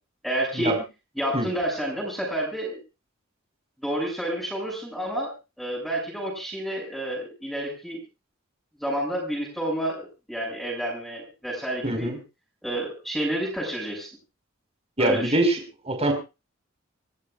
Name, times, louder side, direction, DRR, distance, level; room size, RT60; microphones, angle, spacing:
voice 1, 0.2-0.7 1.2-2.8 3.8-5.3 5.6-8.0 8.8-12.1 12.6-14.2 15.0-15.4, right 1 dB, ahead, -4 dB, 6.5 m, -29 dB
voice 2, 11.8-12.2 15.0-16.1, right 1 dB, 30° right, 4 dB, 4.8 m, -24 dB
28.5 x 13.5 x 2.5 m, 0.31 s
head